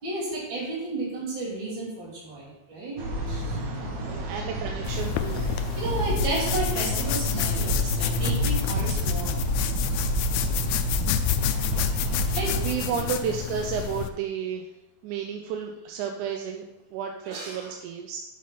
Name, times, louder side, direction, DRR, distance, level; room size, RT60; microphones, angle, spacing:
voice 1, 0.0-3.0 3.3-3.6 5.8-9.4 9.9-10.4 11.1-11.2 12.3-12.6 12.9-13.0 17.2-17.7, right 2 dB, 40° right, -8 dB, 3.4 m, -33 dB
sound 1, 3.0-12.7, right 1 dB, 60° right, 1.1 m, -29 dB
voice 2, 4.1-5.5 10.6-11.1 11.6-11.9 12.6-14.7 15.0-16.7 16.9-18.2, right 7 dB, 90° right, 3 dB, 2.1 m, -32 dB
itching a scratch, 4.9-14.1, left 11 dB, 80° left, 1.7 m, -29 dB
6.2 x 5.6 x 5.8 m, 1.0 s
omnidirectional pair, 3.5 m